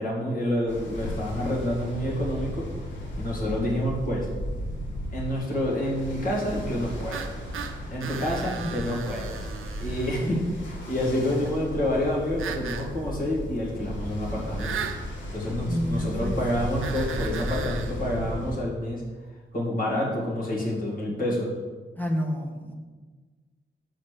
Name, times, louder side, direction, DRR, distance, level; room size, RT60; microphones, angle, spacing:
voice 1, 0.0-2.7 3.2-4.3 5.1-7.3 7.9-9.5 9.8-10.4 10.6-14.7 15.3-19.0 19.5-21.5, left 1 dB, 45° left, -4 dB, 2.1 m, -28 dB
Ocean, 0.7-18.6, equal, 65° left, 1.7 m, -35 dB
sound 1, 7.1-10.3 12.4-12.9 14.6-15.0 16.8-17.9, right 7 dB, 90° right, 0.6 m, -36 dB
voice 2, 15.6-16.4 22.0-22.7, equal, 10° left, 1 dB, 0.8 m, -30 dB
6.7 x 4.3 x 6.6 m, 1.4 s
wide cardioid pair, 170°, 20 cm